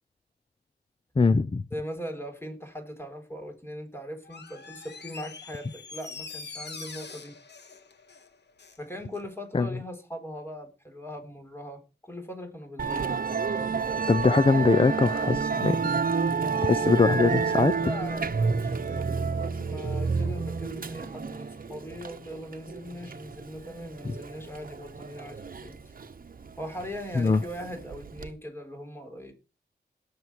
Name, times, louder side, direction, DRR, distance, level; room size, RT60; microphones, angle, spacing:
voice 1, 1.2-1.6 9.5-9.7 14.1-15.8 16.6-17.7 27.2-27.4, left 4 dB, 30° left, 0.6 m, -22 dB
voice 2, 1.7-7.4 8.8-13.2 17.7-25.9 26.6-29.3, equal, 15° left, 3.9 m, -40 dB
Door, 4.2-8.8 9.1-9.2, left 4 dB, 75° left, 1.8 m, -44 dB
Musical instrument, 12.8-28.3, right 5 dB, 55° right, 1.0 m, -30 dB
17.0 x 6.8 x 4.6 m
wide cardioid pair, 85°, 18 cm